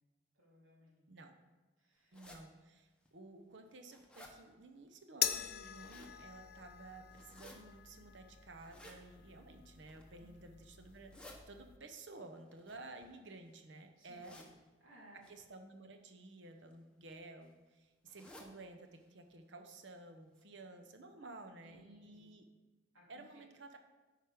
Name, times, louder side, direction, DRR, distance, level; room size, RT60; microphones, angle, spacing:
voice 1, 0.3-1.0 1.8-2.2 10.2-10.4 14.0-15.3 21.6-22.3 22.9-23.4, equal, 90° right, -5 dB, 3.1 m, -62 dB
sound 1, 2.1-2.4 3.0-3.1 3.6-4.3 5.5-6.1 7.1-7.6 8.6-9.0 9.7-10.1 10.9-11.4 12.5-13.5 14.2-14.5 15.2-15.4 16.4-16.7 17.1-17.2 17.4-17.5 18.1-18.5 18.9-19.0 19.3-19.4 20.0-20.1 20.4-20.5, left 1 dB, 5° left, 0.8 m, -57 dB
voice 2, 2.1-14.4 15.3-22.4 23.1-23.8, right 2 dB, 65° right, 5 dB, 0.8 m, -54 dB
sound 2, 5.2-11.8, left 10 dB, 50° left, 0.4 m, -44 dB
9.1 x 4.9 x 5.1 m, 1.2 s
head